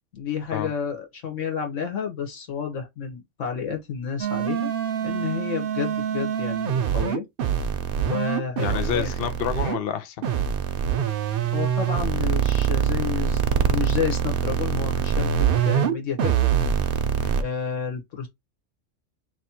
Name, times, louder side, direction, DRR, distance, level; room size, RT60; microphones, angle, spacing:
voice 1, 0.1-4.7 5.0-7.2 8.0-9.1 11.5-15.3 15.6-16.3 17.4-18.3, left 6 dB, 75° left, 1.6 m, -30 dB
sound 1, 4.2-9.8 10.2-17.4, right 8 dB, 55° right, 0.7 m, -24 dB
voice 2, 8.6-10.3 17.2-17.4, left 8 dB, 60° left, 0.7 m, -29 dB
3.0 x 3.0 x 4.3 m
omnidirectional pair, 1.3 m